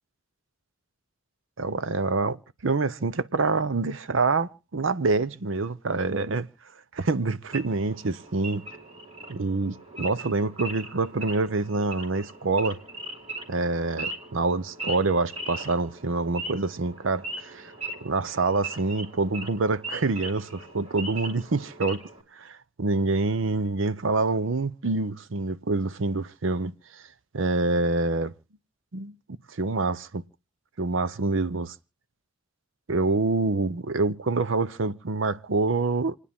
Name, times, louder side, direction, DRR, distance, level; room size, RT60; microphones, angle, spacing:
voice 1, 1.6-6.5 6.9-8.6 9.3-12.8 13.5-17.7 18.0-22.0 22.3-27.0 27.3-28.3 28.9-29.1 29.5-30.2 30.8-31.7 32.9-36.2, right 3 dB, 70° right, 0.7 m, -26 dB
Wild animals / Idling, 7.5-22.2, right 2 dB, 30° right, 2.1 m, -39 dB
29.0 x 9.9 x 3.6 m
head